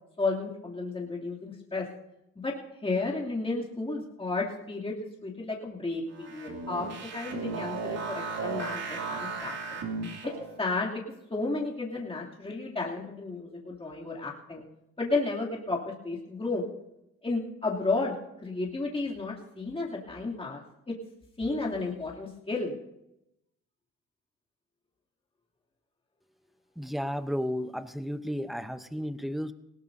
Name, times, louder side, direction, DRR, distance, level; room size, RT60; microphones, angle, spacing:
voice 1, 0.2-1.8 2.4-2.5 2.8-6.9 7.1-9.8 10.6-11.0 11.3-14.6 15.0-16.6 17.2-18.1 18.4-20.6 20.9-21.0 21.4-22.7, left 3 dB, 20° left, -4 dB, 2.8 m, -32 dB
sound 1, 6.1-10.6, right 4 dB, 60° right, 2.8 m, -35 dB
voice 2, 26.8-29.5, equal, ahead, 11 dB, 0.8 m, -33 dB
19.5 x 17.0 x 2.7 m, 0.85 s
cardioid pair, 90°, 30 cm